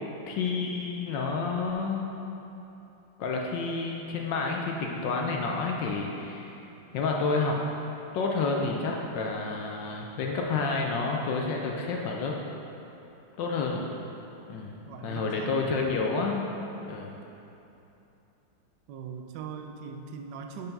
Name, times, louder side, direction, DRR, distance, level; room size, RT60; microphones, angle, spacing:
voice 1, 0.3-2.1 3.2-6.6 6.9-7.6 8.1-12.4 13.4-13.9 14.5-16.5 16.8-17.1, left 4 dB, 70° left, 0 dB, 1.2 m, -29 dB
voice 2, 14.8-15.7 18.9-20.7, right 6 dB, 70° right, 4 dB, 1.1 m, -40 dB
5.9 x 5.5 x 5.3 m, 2.9 s
omnidirectional pair, 2.3 m